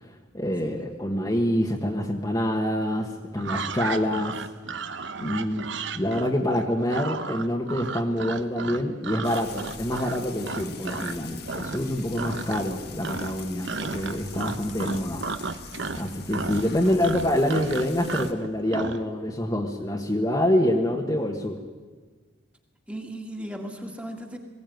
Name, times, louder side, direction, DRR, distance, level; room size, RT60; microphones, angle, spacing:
voice 1, 0.0-4.4 5.2-5.7 5.9-15.2 16.0-21.6, left 1 dB, 20° left, 1 dB, 1.3 m, -26 dB
sound 1, 3.4-11.2 11.5-11.9 12.1-12.8 13.0-19.0, right 4 dB, 65° right, 1.0 m, -34 dB
Frying (food), 9.2-18.3, left 5 dB, 50° left, 1.5 m, -43 dB
voice 2, 11.7-12.4 16.8-17.4 22.9-24.4, right 1 dB, 5° right, 3 dB, 1.9 m, -38 dB
21.0 x 16.5 x 9.2 m, 1.4 s
head